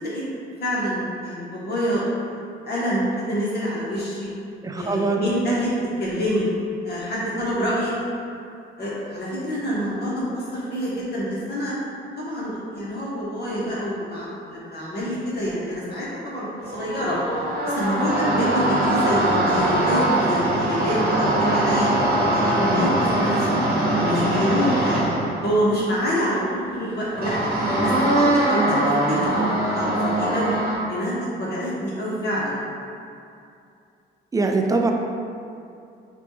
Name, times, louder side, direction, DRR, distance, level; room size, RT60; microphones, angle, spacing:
voice 1, 0.6-2.0 2.3-4.3 4.7-5.7 6.0-6.4 6.8-7.9 8.8-11.7 12.2-17.2 17.6-21.9 22.3-23.6 24.0-25.1 25.4-27.3 27.8-30.6 30.9-32.5, equal, 55° left, -7 dB, 0.9 m, -26 dB
voice 2, 4.6-5.3 34.3-34.9, right 3 dB, 20° right, 3 dB, 0.3 m, -22 dB
sound 1, 16.6-25.5 27.2-30.8, right 1 dB, 50° right, 1.0 m, -22 dB
5.0 x 2.2 x 3.0 m, 2.5 s
cardioid pair, 90°, 20 cm